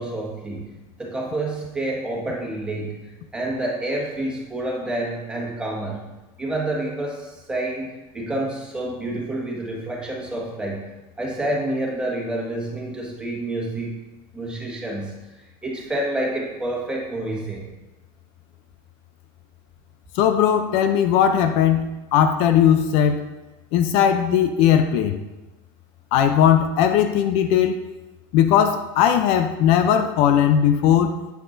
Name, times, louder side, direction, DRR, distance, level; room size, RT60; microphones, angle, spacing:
voice 1, 0.0-3.0 3.3-6.0 6.4-10.9 11.2-14.0 14.3-15.1 15.6-17.6, right 1 dB, 10° right, -3 dB, 1.7 m, -28 dB
voice 2, 20.1-23.2 23.7-25.2 26.1-27.8 28.3-31.1, left 9 dB, 65° left, 8 dB, 0.6 m, -18 dB
8.2 x 8.2 x 2.6 m, 1.1 s
cardioid pair, 145°, 12 cm